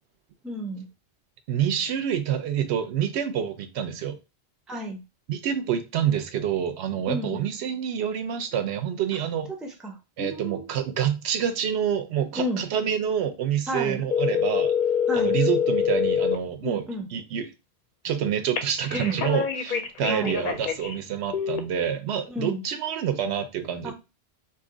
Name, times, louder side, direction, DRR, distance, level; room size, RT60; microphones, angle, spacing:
voice 1, 0.4-0.9 4.7-5.0 7.1-7.4 9.6-10.7 12.4-12.6 13.7-14.0 15.1-15.4 16.6-17.1 18.9-19.2 20.1-20.4 22.3-22.6 23.8-23.9, equal, ahead, 0.4 m, -31 dB
voice 2, 1.5-4.2 5.3-9.5 10.2-14.7 15.1-16.8 17.1-17.5 18.0-23.9, right 9 dB, 90° right, 0.9 m, -27 dB
sound 1, 14.1-16.4 18.6-21.0 21.3-21.6, left 7 dB, 60° left, 0.6 m, -25 dB
2.7 x 2.4 x 3.8 m
omnidirectional pair, 1.1 m